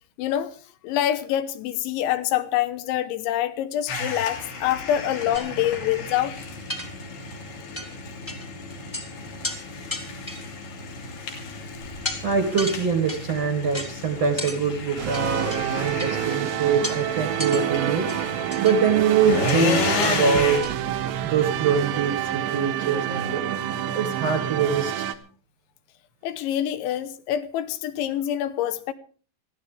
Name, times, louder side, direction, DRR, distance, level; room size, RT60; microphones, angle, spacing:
voice 1, 0.2-0.5 0.8-6.3 26.2-28.9, left 11 dB, 80° left, 3.2 m, -26 dB
sound 1, 3.9-20.6, left 3 dB, 60° left, 4.9 m, -32 dB
sound 2, 5.3-5.5 6.1-6.2 6.7-7.3 7.7-7.9 8.3-8.5 8.7-9.1 9.4-9.6 9.9-10.6 11.3-11.6 12.0-12.2 12.6-13.3 13.7-13.9 14.4-14.6 15.1-15.6 16.0-16.1 16.8-17.0 17.4-17.6 18.1-18.8 19.5-19.6 20.0-20.1 20.4-20.8, left 1 dB, 10° left, 1.5 m, -33 dB
voice 2, 12.2-18.1 18.6-20.8 21.2-23.4 23.9-25.1, right 6 dB, 50° right, 2.0 m, -24 dB
sound 3, 15.0-25.2, right 11 dB, 80° right, 3.2 m, -28 dB
23.0 x 14.5 x 3.4 m
omnidirectional pair, 5.4 m